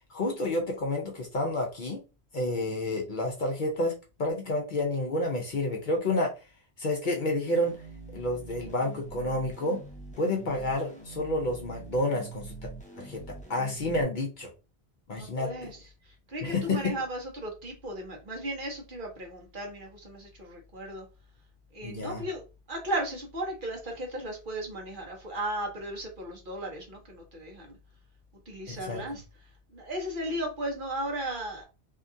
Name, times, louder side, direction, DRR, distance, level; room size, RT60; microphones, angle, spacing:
voice 1, 0.1-2.0 2.3-6.3 6.8-7.8 8.1-9.8 10.2-12.5 13.0-13.2 13.5-14.5 15.1-15.7 16.4-16.9 21.8-22.2 28.7-29.0, left 1 dB, 55° left, 1 dB, 0.7 m, -29 dB
sound 1, 7.5-14.0, right 3 dB, 10° left, 0.6 m, -45 dB
voice 2, 15.1-21.1 21.7-22.4 22.7-27.8 28.5-29.2 29.7-31.6, right 1 dB, 50° right, 1 dB, 1.0 m, -36 dB
2.8 x 2.4 x 2.6 m, 0.30 s
omnidirectional pair, 1.1 m